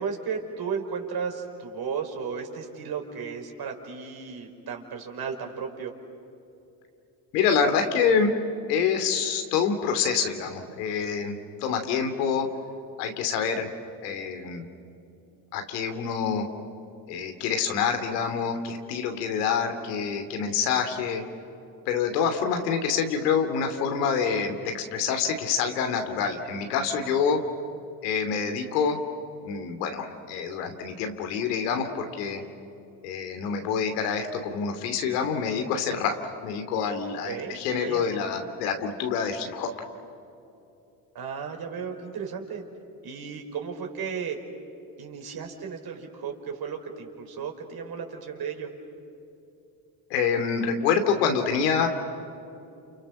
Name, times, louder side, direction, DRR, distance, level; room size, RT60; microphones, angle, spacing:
voice 1, 0.0-5.9 37.2-38.1 41.1-42.6 43.0-44.4 45.0-48.7, right 6 dB, 50° right, 3 dB, 5.1 m, -34 dB
voice 2, 7.3-8.3 8.7-12.5 13.0-13.7 14.0-14.7 15.5-16.5 17.1-21.2 21.9-27.4 28.0-29.0 29.4-32.4 33.0-39.7 50.1-51.9, left 6 dB, 90° left, 6 dB, 3.0 m, -26 dB
29.5 x 29.5 x 6.4 m, 2.8 s
supercardioid pair, 80°, 46 cm